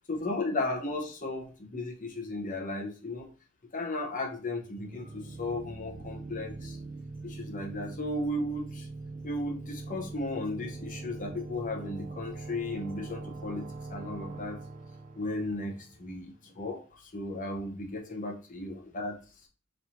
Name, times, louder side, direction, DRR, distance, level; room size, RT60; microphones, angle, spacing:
voice 1, 0.1-3.3 3.7-6.8 7.2-8.9 9.2-14.6 15.2-19.2, left 2 dB, 40° left, 0 dB, 0.8 m, -35 dB
sound 1, 4.8-16.3, right 3 dB, 35° right, 0.4 m, -42 dB
3.2 x 2.7 x 4.2 m, 0.34 s
head